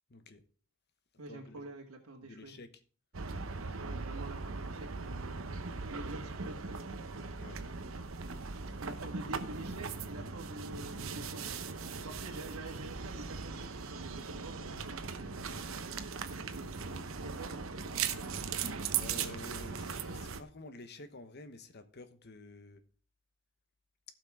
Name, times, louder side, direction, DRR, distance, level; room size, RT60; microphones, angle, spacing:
voice 1, 0.1-0.4 1.3-1.7 2.2-2.8 7.4-7.6 8.9-9.1 19.0-22.8, left 2 dB, 50° left, 1.1 m, -50 dB
voice 2, 1.2-2.6 3.8-5.6 5.9-6.8 8.8-11.6 12.0-15.7 16.3-16.7 17.2-17.5, right 2 dB, 85° right, 1.8 m, -47 dB
sound 1, 3.1-20.4, right 5 dB, 65° right, 0.9 m, -39 dB
16.5 x 6.0 x 3.6 m
head